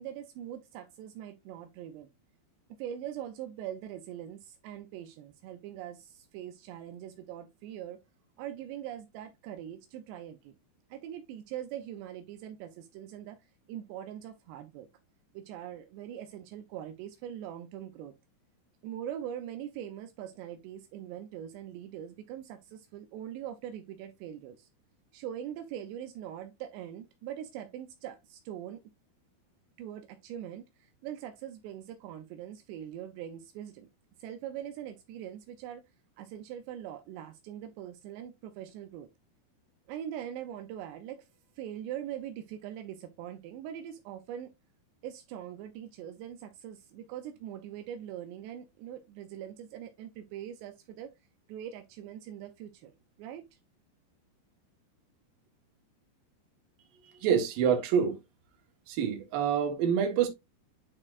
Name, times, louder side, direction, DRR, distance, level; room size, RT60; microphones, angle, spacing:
voice 1, 0.0-2.1 2.8-8.0 8.4-10.5 10.9-13.4 13.7-14.9 15.3-18.1 18.8-24.7 25.1-28.8 29.8-33.9 34.2-35.8 36.2-39.1 39.9-41.3 41.6-44.5 45.0-51.1 51.5-52.9 53.2-53.5, right 10 dB, 85° right, 2.7 m, -42 dB
voice 2, 57.2-58.2 58.9-60.3, right 7 dB, 65° right, 2.6 m, -26 dB
9.7 x 4.3 x 2.4 m
omnidirectional pair, 5.0 m